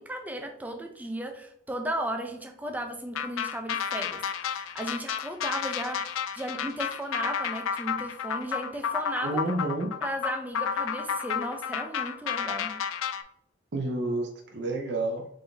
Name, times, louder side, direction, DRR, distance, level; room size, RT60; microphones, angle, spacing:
voice 1, 0.0-9.4 10.0-12.7, right 1 dB, 10° right, 5 dB, 0.4 m, -35 dB
sound 1, 3.1-13.2, left 7 dB, 85° left, 0.4 m, -31 dB
voice 2, 9.2-9.9 13.7-15.3, right 2 dB, 55° right, 1 dB, 0.6 m, -30 dB
3.9 x 3.8 x 3.4 m, 0.72 s
head